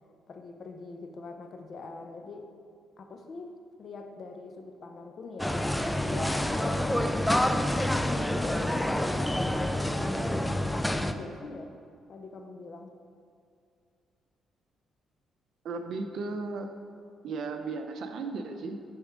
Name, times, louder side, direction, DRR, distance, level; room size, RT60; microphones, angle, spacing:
voice 1, 0.3-2.5 3.0-6.9 7.5-11.7 12.1-12.9, left 3 dB, 50° left, 5 dB, 0.7 m, -43 dB
sound 1, 5.4-11.1, left 1 dB, 5° left, 0.3 m, -27 dB
voice 2, 15.6-16.7 17.2-18.8, right 3 dB, 70° right, 6 dB, 0.6 m, -35 dB
8.6 x 3.6 x 5.0 m, 2.4 s
cardioid pair, 90°, 0 cm